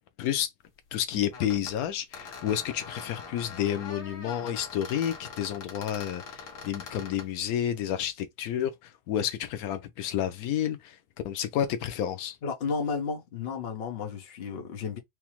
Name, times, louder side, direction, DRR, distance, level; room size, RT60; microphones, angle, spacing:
voice 1, 0.2-0.5 0.9-11.0 11.2-12.4, left 10 dB, 90° left, 1.1 m, -30 dB
sound 1, 1.3-1.8 2.1-7.3, left 5 dB, 65° left, 1.3 m, -43 dB
voice 2, 12.4-15.0, left 5 dB, 50° left, 1.0 m, -33 dB
4.8 x 2.0 x 3.0 m
omnidirectional pair, 1.5 m